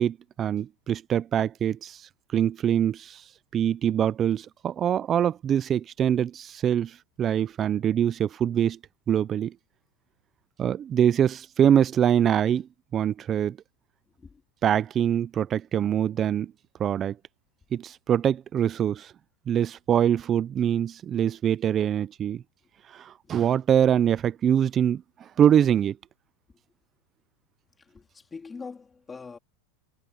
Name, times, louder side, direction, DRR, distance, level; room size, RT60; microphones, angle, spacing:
voice 1, 0.0-2.0 2.3-3.2 3.5-8.8 9.1-9.5 10.6-12.7 12.9-13.6 14.6-16.5 16.8-17.2 17.7-19.1 19.5-22.4 22.9-26.0, right 9 dB, 25° right, 0.4 m, -24 dB
voice 2, 14.1-14.4 22.6-22.7 23.2-23.5 26.5-26.6 27.8-29.4, left 4 dB, 15° left, 3.4 m, -44 dB
supercardioid pair, 160°, 0 cm